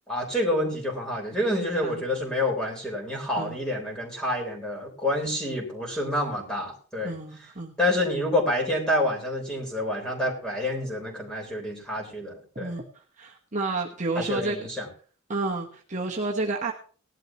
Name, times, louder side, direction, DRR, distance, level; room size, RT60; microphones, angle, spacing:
voice 1, 0.1-7.1 7.8-12.7 14.2-14.9, left 1 dB, 5° left, -1 dB, 3.8 m, -28 dB
voice 2, 7.0-7.7 12.5-12.9 13.2-14.6 15.3-16.7, right 3 dB, 35° right, -1 dB, 1.1 m, -30 dB
18.0 x 11.5 x 3.0 m, 0.41 s
head